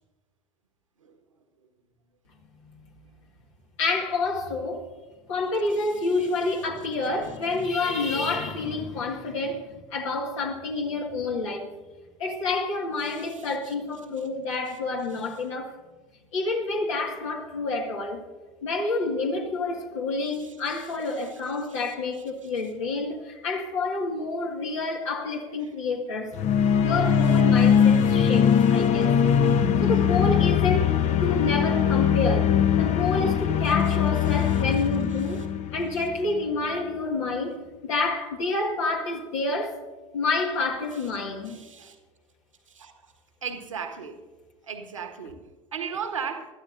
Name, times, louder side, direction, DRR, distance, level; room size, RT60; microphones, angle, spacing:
voice 1, 3.8-4.9 5.3-11.7 12.2-15.8 16.3-18.3 18.6-26.4 26.8-29.2 29.8-39.8 40.1-41.6, left 3 dB, 70° left, 1.9 m, -28 dB
voice 2, 13.1-13.5 20.4-20.5 21.2-21.3 21.7-21.8 27.6-28.8 29.5-29.6 34.4-34.6 41.4-41.9 42.7-43.1 43.4-44.2 44.6-45.4 45.7-46.5, right 6 dB, 85° right, 1.6 m, -37 dB
sound 1, 26.3-36.4, left 8 dB, 45° left, 0.8 m, -21 dB
24.0 x 13.0 x 2.6 m
figure-of-eight pair, 75°, 16 cm